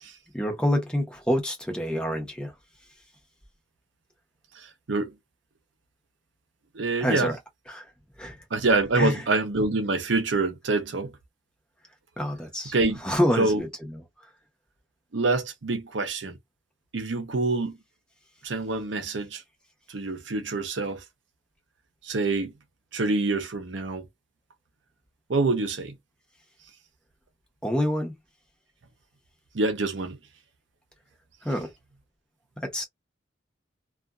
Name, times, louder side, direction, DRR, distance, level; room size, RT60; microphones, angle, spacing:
voice 1, 0.3-2.5 7.0-7.4 7.7-7.9 8.2-8.4 9.0-9.1 12.2-12.7 13.0-13.7 27.6-28.1 31.4-31.7 32.6-32.8, equal, 5° left, 0.9 m, -26 dB
voice 2, 4.5-5.1 6.7-7.3 8.5-11.1 12.7-13.0 13.4-13.6 15.1-16.4 16.9-17.8 18.4-19.4 19.9-21.0 22.0-22.5 22.9-24.1 25.3-25.9 29.5-30.2, right 3 dB, 85° right, 0.7 m, -26 dB
2.6 x 2.3 x 2.3 m
head